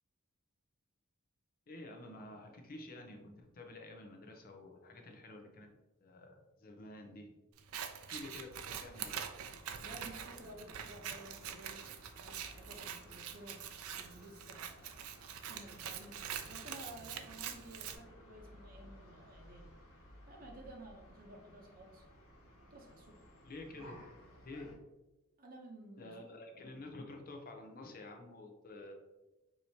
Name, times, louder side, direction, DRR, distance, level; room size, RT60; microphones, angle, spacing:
voice 1, 1.7-5.7 6.0-7.3 8.1-9.2 23.4-24.0 24.4-24.7 26.0-28.9, left 2 dB, 45° left, 3 dB, 0.6 m, -50 dB
Scissors, 7.6-18.0, right 8 dB, 85° right, 0.4 m, -45 dB
sound 1, 8.5-24.7, equal, 85° left, 1.2 m, -58 dB
voice 2, 9.8-11.8 12.1-14.9 15.3-16.1 16.5-19.8 20.3-22.1 22.7-23.3 25.4-26.4, right 1 dB, 45° right, 1 dB, 0.7 m, -54 dB
4.7 x 2.8 x 2.8 m, 1.0 s
head